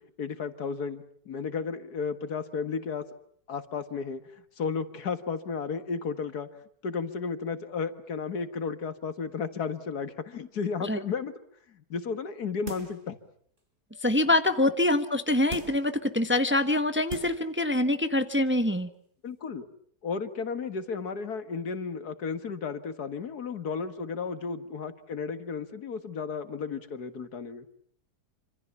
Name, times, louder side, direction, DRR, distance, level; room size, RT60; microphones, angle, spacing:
voice 1, 0.2-3.0 3.5-4.2 4.6-6.5 6.8-11.3 11.7-13.2 14.6-14.7 19.2-19.7 20.0-27.7, left 5 dB, 75° left, 10 dB, 2.2 m, -33 dB
sound 1, 12.7-13.1 13.6-13.7 15.5-15.9 16.6-16.7 17.1-17.5 17.9-18.0, right 1 dB, 30° right, 4.7 m, -39 dB
voice 2, 14.0-18.9, left 1 dB, 10° right, 9 dB, 1.1 m, -25 dB
27.5 x 26.5 x 7.2 m, 0.63 s
omnidirectional pair, 1.7 m